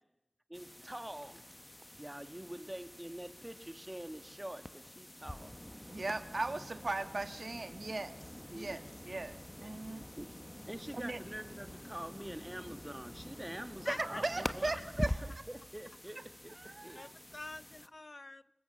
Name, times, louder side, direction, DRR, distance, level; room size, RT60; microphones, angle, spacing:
sound 1, 0.5-17.9, left 1 dB, 20° left, 1.2 m, -46 dB
voice 1, 0.5-1.5 2.0-5.5 8.5-8.8 10.2-10.3 10.7-14.7 15.2-17.2, right 1 dB, 20° right, 10 dB, 1.6 m, -46 dB
voice 2, 5.9-8.2 8.5-10.1 10.9-11.2 13.9-15.4 16.6-17.1, right 2 dB, 65° right, 9 dB, 1.6 m, -38 dB
voice 3, 13.8-14.5 16.9-18.4, left 2 dB, 55° left, 15 dB, 0.8 m, -46 dB
28.0 x 20.0 x 7.8 m, 0.94 s
wide cardioid pair, 50°, 0 cm